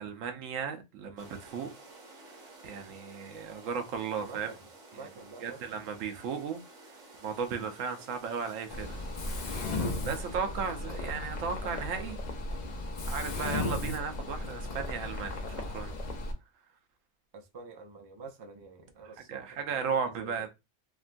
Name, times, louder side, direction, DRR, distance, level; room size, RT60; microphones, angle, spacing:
voice 1, 0.0-1.7 2.6-4.5 5.4-6.6 7.2-9.0 9.3-9.4 10.1-12.2 13.1-15.9 19.3-20.5, right 6 dB, 90° right, 1.0 m, -35 dB
sound 1, 1.2-10.4, right 2 dB, 70° right, 1.3 m, -52 dB
voice 2, 4.1-5.8 9.7-9.9 17.3-20.4, right 3 dB, 40° right, 0.3 m, -48 dB
Mechanisms, 8.7-16.3, left 2 dB, 50° left, 0.5 m, -35 dB
3.5 x 2.2 x 2.5 m
omnidirectional pair, 1.3 m